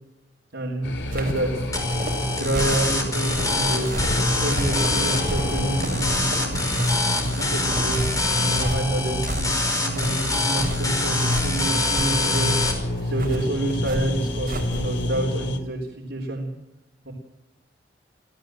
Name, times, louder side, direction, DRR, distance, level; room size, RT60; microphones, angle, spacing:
voice 1, 0.5-6.6 7.1-12.6 13.0-16.5 17.1-17.2, right 1 dB, 80° right, -1 dB, 3.8 m, -29 dB
sound 1, 0.8-15.6, left 1 dB, 70° left, 2.7 m, -28 dB
sound 2, 1.0-15.1, right 1 dB, 55° right, 4.6 m, -33 dB
sound 3, 1.7-12.7, left 2 dB, 20° left, 4.9 m, -26 dB
26.0 x 15.5 x 7.7 m, 0.95 s
head